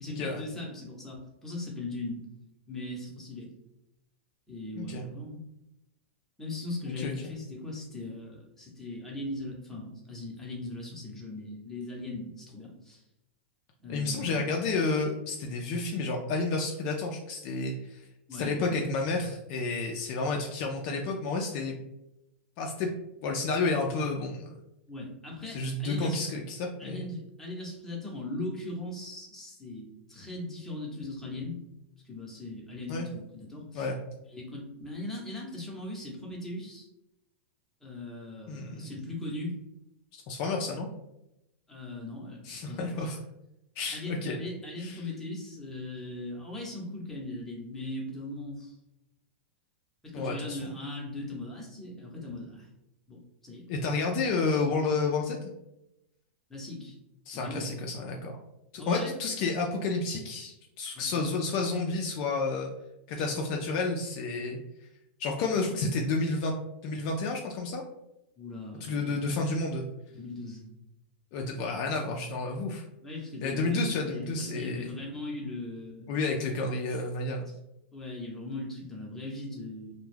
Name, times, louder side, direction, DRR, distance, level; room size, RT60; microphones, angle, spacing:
voice 1, 0.0-2.2 2.7-3.5 4.5-5.4 6.4-13.0 13.8-14.4 18.3-18.7 24.9-26.3 26.8-31.6 32.0-33.9 34.3-36.9 37.8-39.5 41.7-43.1 43.9-48.8 50.0-52.7 53.1-53.7 56.5-57.0 57.3-57.7 58.8-59.2 60.9-61.3 63.1-63.3 68.4-69.4 70.1-70.7 73.0-76.2 77.5-77.6 77.9-79.9, left 2 dB, 5° left, -4 dB, 0.7 m, -39 dB
voice 2, 4.8-5.1 7.0-7.4 13.9-21.8 22.6-22.9 23.2-24.6 25.5-27.1 32.9-33.1 33.7-34.0 38.5-38.9 40.1-40.9 42.5-43.2 43.8-44.4 44.8-45.1 50.1-50.8 53.7-55.5 57.3-58.3 58.7-62.7 63.1-64.6 65.2-66.5 66.8-67.8 68.8-69.8 71.3-72.8 73.4-74.8 76.1-77.5, left 3 dB, 45° left, 1 dB, 0.3 m, -31 dB
2.2 x 2.1 x 3.2 m, 0.88 s
hypercardioid pair, 135°, 7 cm